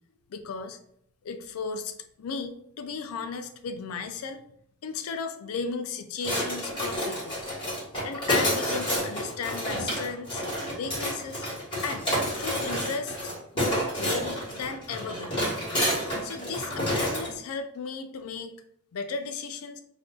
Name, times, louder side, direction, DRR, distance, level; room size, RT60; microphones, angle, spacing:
voice 1, 0.3-0.8 1.2-4.4 4.8-7.4 8.0-10.4 10.8-11.4 11.8-12.1 12.4-15.6 16.2-18.5 18.9-19.8, left 5 dB, 75° left, 9 dB, 0.4 m, -35 dB
sound 1, 6.2-17.3, equal, 25° left, 1.2 m, -29 dB
2.6 x 2.3 x 3.6 m, 0.70 s
head